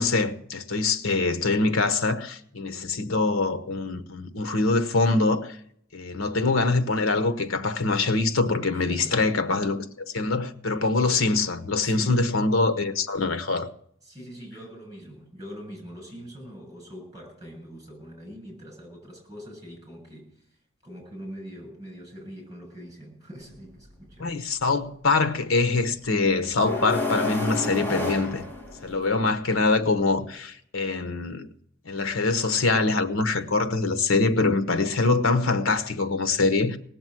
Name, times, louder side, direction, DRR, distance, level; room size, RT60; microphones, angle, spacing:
voice 1, 0.0-5.6 5.9-13.7 24.2-28.4 28.8-31.5 31.8-36.8, left 3 dB, 90° left, 1.1 m, -24 dB
voice 2, 8.7-9.2 11.8-12.2 14.0-24.3, equal, 20° right, 7.0 m, -43 dB
sound 1, 23.4-23.5 26.6-29.2, left 2 dB, 10° left, 2.4 m, -29 dB
18.0 x 7.3 x 7.7 m
head